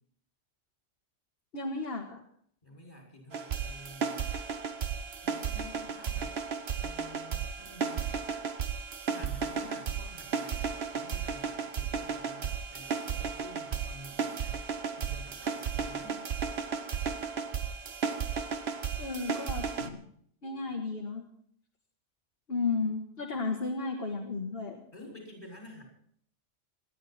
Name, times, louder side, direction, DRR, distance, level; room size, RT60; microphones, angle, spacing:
voice 1, 1.5-2.2 19.0-20.0 20.4-21.2 22.5-24.8, left 4 dB, 55° left, 2 dB, 2.0 m, -33 dB
voice 2, 2.6-4.3 5.2-6.4 6.8-8.2 9.1-14.6 14.9-16.2 24.9-25.8, left 1 dB, 35° left, -1 dB, 6.5 m, -50 dB
sound 1, 3.3-19.9, right 6 dB, 60° right, 1.4 m, -34 dB
27.5 x 10.5 x 4.4 m, 0.64 s
omnidirectional pair, 1.2 m